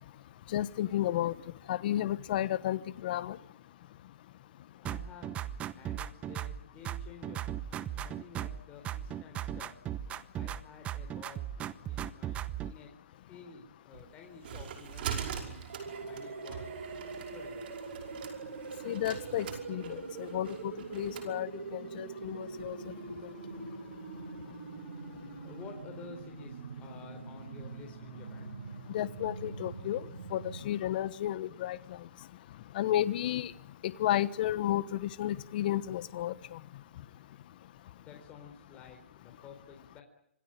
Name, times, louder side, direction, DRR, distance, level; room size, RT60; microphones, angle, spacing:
voice 1, 0.5-1.3 1.7-3.4 18.8-22.8 28.9-30.0 30.3-31.8 32.7-33.5 34.0-36.6, left 12 dB, 45° left, 16 dB, 1.2 m, -32 dB
voice 2, 4.8-5.4 5.7-7.4 7.9-9.7 10.4-11.5 11.8-12.9 13.3-15.6 16.1-16.8 17.1-17.7 25.4-28.6 38.0-40.0, left 5 dB, 20° left, 3 dB, 4.1 m, -51 dB
sound 1, 4.8-6.6 6.8-8.6 8.8-10.6 10.8-12.7, right 11 dB, 15° right, 0.9 m, -37 dB
sound 2, 13.9-21.3, right 8 dB, 50° right, 5.4 m, -42 dB
sound 3, 15.7-30.6, right 4 dB, 70° right, 5.3 m, -43 dB
27.0 x 18.5 x 9.1 m, 0.74 s
hypercardioid pair, 145°, 7 cm